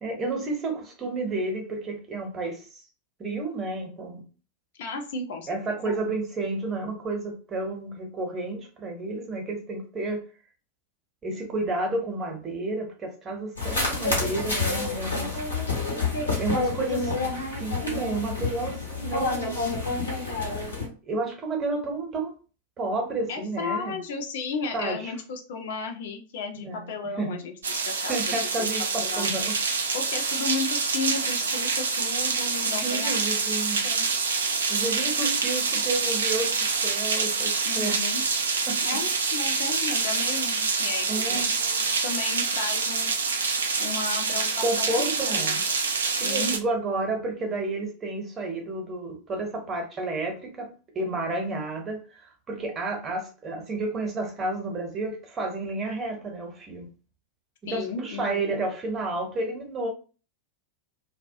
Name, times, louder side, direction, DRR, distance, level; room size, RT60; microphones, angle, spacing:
voice 1, 0.0-2.8 3.2-4.2 5.5-10.2 11.2-15.4 16.4-19.7 20.7-22.4 22.8-24.0 24.7-25.1 26.6-26.9 27.2-27.4 28.1-29.6 30.2-30.3 32.8-33.8 34.7-38.0 38.7-39.0 41.1-41.5 44.6-45.6 46.2-50.7 50.9-56.9 57.6-59.9, right 2 dB, 25° right, 0.7 m, -31 dB
voice 2, 4.8-6.0 20.4-20.5 23.3-27.5 27.9-28.2 28.6-28.7 28.9-29.3 29.9-33.4 33.8-34.0 37.7-38.2 38.8-43.1 43.8-45.6 46.1-46.6 57.7-58.6, left 4 dB, 55° left, 0.5 m, -34 dB
sound 1, 13.6-20.9, left 3 dB, 80° left, 1.0 m, -28 dB
sound 2, 27.6-46.6, right 4 dB, 70° right, 0.3 m, -26 dB
2.2 x 2.1 x 2.6 m
figure-of-eight pair, 90°, 0 cm